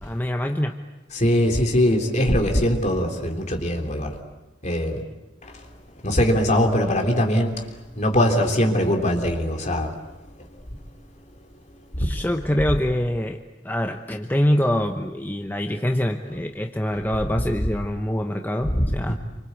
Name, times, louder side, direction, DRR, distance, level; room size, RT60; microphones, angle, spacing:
voice 1, 0.0-0.8 12.0-19.2, left 1 dB, 10° left, 0.9 m, -25 dB
voice 2, 1.1-4.2 4.6-5.0 5.4-5.6 6.0-10.0 10.4-10.5 12.0-12.1 18.7-19.2, equal, 40° left, 3.5 m, -22 dB
27.5 x 25.0 x 8.3 m
head